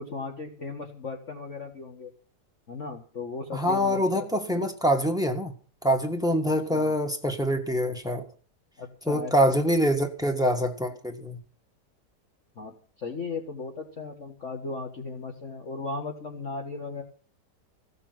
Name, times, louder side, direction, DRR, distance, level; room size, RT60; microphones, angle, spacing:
voice 1, 0.0-2.1 2.7-4.3 4.5-4.6 6.4-6.9 8.8-9.6 12.6-17.0, left 4 dB, 45° left, 1.8 m, -36 dB
voice 2, 3.5-5.5 5.8-8.3 9.1-11.4, equal, ahead, 1.3 m, -25 dB
15.5 x 6.8 x 9.2 m
omnidirectional pair, 1.9 m